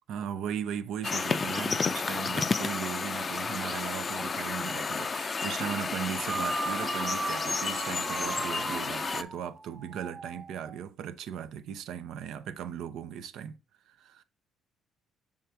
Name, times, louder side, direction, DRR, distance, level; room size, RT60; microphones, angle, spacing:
voice 1, 0.1-13.6 13.9-14.2, right 8 dB, 75° right, 0.5 m, -37 dB
sound 1, 1.0-9.2, left 4 dB, 35° left, 0.4 m, -31 dB
sound 2, 6.2-10.8, right 4 dB, 30° right, 0.8 m, -37 dB
6.4 x 3.5 x 4.5 m
cardioid pair, 90°, 0 cm